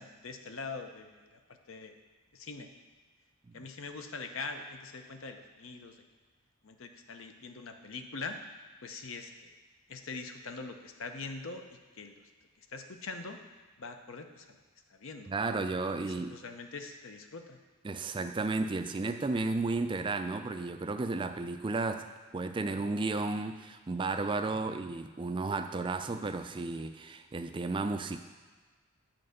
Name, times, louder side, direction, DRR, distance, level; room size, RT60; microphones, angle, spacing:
voice 1, 0.0-1.4 1.7-1.9 2.3-2.7 3.5-6.0 6.6-8.4 8.8-9.5 9.9-11.6 12.0-12.1 12.7-13.4 13.8-14.5 14.9-15.3 16.0-17.6 24.7-24.8, left 4 dB, 60° left, 6 dB, 0.7 m, -43 dB
voice 2, 15.3-16.3 17.8-22.1 22.3-28.2, right 3 dB, 20° right, 8 dB, 0.3 m, -33 dB
7.8 x 4.5 x 6.5 m, 1.4 s
head